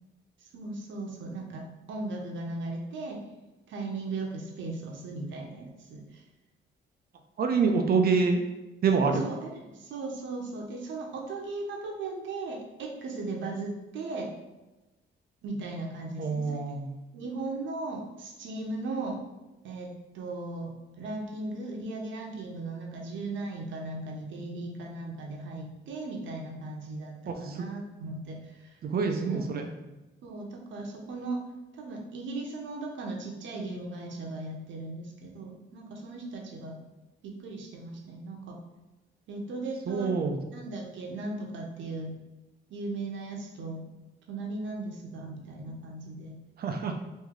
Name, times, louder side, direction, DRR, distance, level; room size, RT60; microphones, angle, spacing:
voice 1, 0.5-3.2 3.7-6.0 9.2-14.3 15.4-16.7 17.1-19.2 19.6-28.4 29.1-29.5 30.2-31.4 31.8-36.8 37.2-38.6 39.3-40.1 40.5-42.1 42.7-43.8 44.3-46.4, right 2 dB, 70° right, 1 dB, 0.8 m, -37 dB
voice 2, 7.4-8.4 8.8-9.3 16.2-16.9 27.3-27.7 28.8-29.7 39.9-40.4 46.6-46.9, right 5 dB, 50° right, 4 dB, 0.5 m, -26 dB
3.1 x 2.6 x 3.6 m, 1.1 s
cardioid pair, 90°, 20 cm